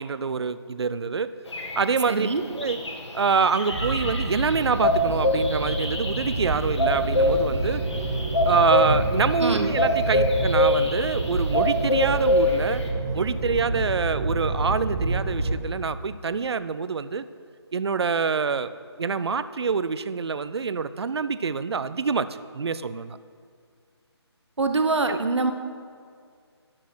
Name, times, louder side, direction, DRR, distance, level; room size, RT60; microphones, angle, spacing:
voice 1, 0.0-1.3 1.8-2.3 2.6-2.8 3.1-7.8 8.5-12.8 13.1-17.2 17.7-18.7 19.0-23.2 25.1-25.2, right 5 dB, 65° right, 14 dB, 0.4 m, -26 dB
sound 1, 1.5-12.9, left 1 dB, 90° left, 1.5 m, -25 dB
voice 2, 2.1-2.4 9.4-9.7 24.6-25.5, right 3 dB, 85° right, 7 dB, 1.0 m, -24 dB
sound 2, 3.7-15.6, right 2 dB, 5° right, 0.4 m, -28 dB
11.5 x 4.6 x 6.1 m, 2.2 s
figure-of-eight pair, 170°, 14 cm